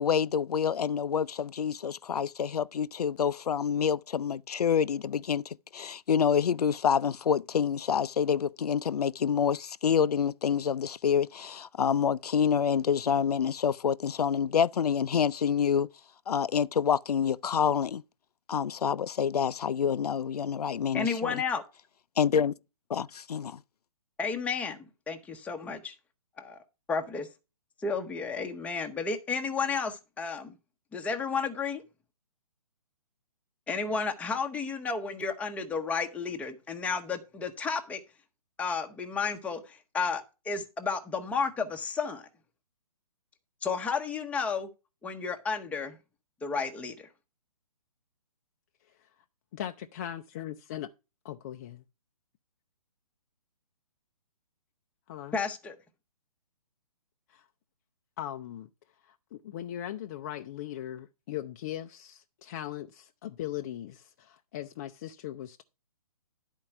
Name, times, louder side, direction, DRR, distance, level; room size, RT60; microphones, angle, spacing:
voice 1, 0.0-15.9 16.3-18.0 18.5-21.4 22.2-22.5 22.9-23.6, left 7 dB, 85° left, 0.4 m, -27 dB
voice 2, 20.9-21.6 24.2-25.9 26.4-26.6 26.9-27.3 27.8-30.5 30.9-31.8 33.7-38.0 38.6-42.3 43.6-44.7 45.0-46.0 46.4-47.1 55.3-55.8, left 5 dB, 5° left, 0.8 m, -32 dB
voice 3, 49.5-50.9 51.2-51.8 55.1-55.4 57.3-57.4 58.2-58.7 59.0-65.6, left 12 dB, 25° left, 0.4 m, -39 dB
10.5 x 4.5 x 5.7 m
hypercardioid pair, 145°, 19 cm